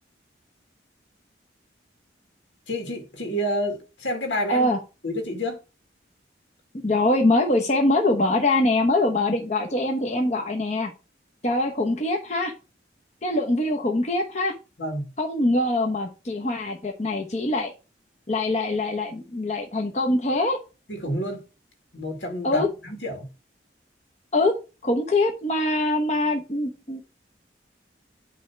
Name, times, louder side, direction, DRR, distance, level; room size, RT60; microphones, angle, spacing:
voice 1, 2.7-4.7 5.0-5.6 14.8-15.1 20.9-21.4 21.9-23.3, equal, 85° left, 2.3 m, -29 dB
voice 2, 4.5-4.8 6.8-10.9 11.4-12.5 13.2-14.5 15.2-17.7 18.3-20.6 22.4-22.7 24.3-24.5 24.8-27.0, left 2 dB, 40° left, 0.9 m, -23 dB
9.2 x 3.3 x 5.9 m
head